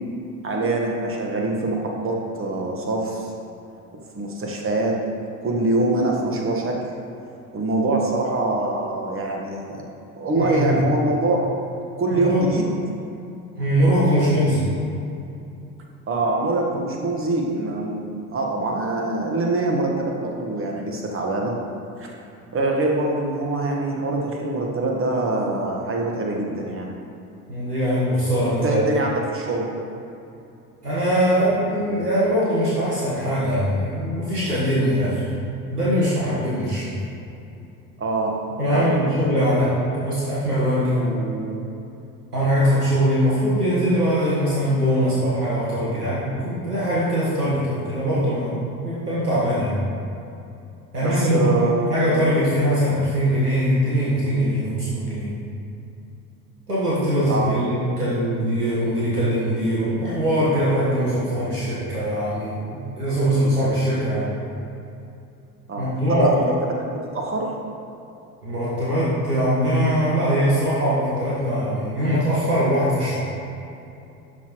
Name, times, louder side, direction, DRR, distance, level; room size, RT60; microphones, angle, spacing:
voice 1, 0.4-3.3 4.1-5.0 5.4-6.9 7.5-9.9 10.2-11.5 12.0-12.7 16.1-21.6 22.0-22.1 22.5-26.9 28.6-29.7 38.0-38.4 38.7-39.0 51.0-51.9 57.3-57.5 65.7-66.4 66.9-67.5, right 2 dB, 30° right, 0 dB, 1.5 m, -24 dB
voice 2, 10.4-10.8 12.1-12.4 13.6-14.7 27.5-28.8 30.8-35.3 35.7-36.9 38.6-41.6 42.3-49.8 50.9-51.5 51.9-55.3 56.7-64.3 65.8-66.5 68.4-73.3, equal, 90° right, -8 dB, 1.6 m, -22 dB
11.5 x 6.3 x 3.1 m, 2.7 s
figure-of-eight pair, 65°, 45 cm